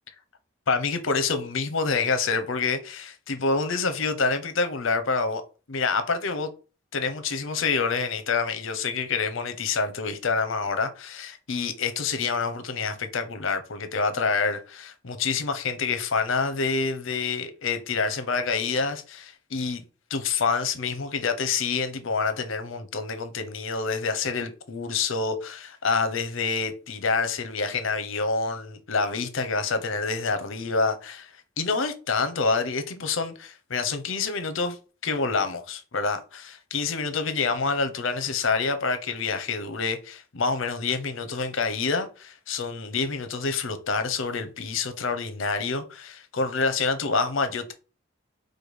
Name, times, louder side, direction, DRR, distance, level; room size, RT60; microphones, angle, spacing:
voice 1, 0.7-5.4 5.7-6.5 6.9-19.8 20.1-31.3 31.6-34.8 35.0-47.7, left 4 dB, 75° left, 0.7 m, -27 dB
5.0 x 2.2 x 4.7 m
head